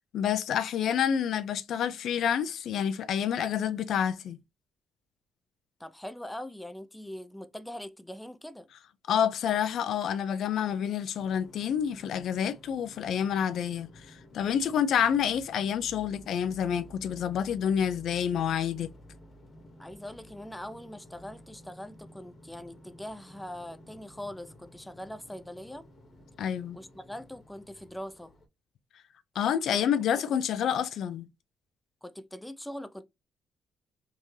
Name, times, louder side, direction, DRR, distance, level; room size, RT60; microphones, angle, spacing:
voice 1, 0.1-4.4 9.1-18.9 26.4-26.8 29.4-31.3, left 8 dB, 70° left, 0.4 m, -28 dB
voice 2, 5.8-8.7 19.8-25.9 26.7-28.3 29.7-30.1 32.0-33.0, left 1 dB, 5° left, 0.4 m, -42 dB
sound 1, 11.1-28.5, equal, 40° left, 1.0 m, -53 dB
3.5 x 2.6 x 3.1 m
cardioid pair, 90°, 0 cm